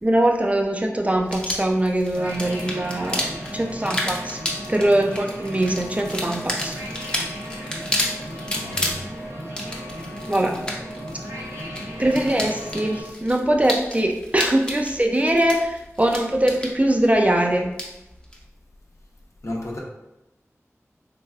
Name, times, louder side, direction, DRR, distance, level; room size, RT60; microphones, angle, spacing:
voice 1, 0.0-4.4 4.7-6.8 10.3-10.6 12.0-17.7, right 1 dB, 25° right, 2 dB, 0.4 m, -22 dB
sound 1, 1.2-18.4, left 1 dB, 15° left, 0.6 m, -32 dB
sound 2, 2.1-13.0, equal, 75° right, 1.2 m, -35 dB
voice 2, 8.5-9.0 19.4-19.8, left 1 dB, 65° left, -2 dB, 0.7 m, -32 dB
3.4 x 3.3 x 2.3 m, 0.94 s
wide cardioid pair, 45°, 5 cm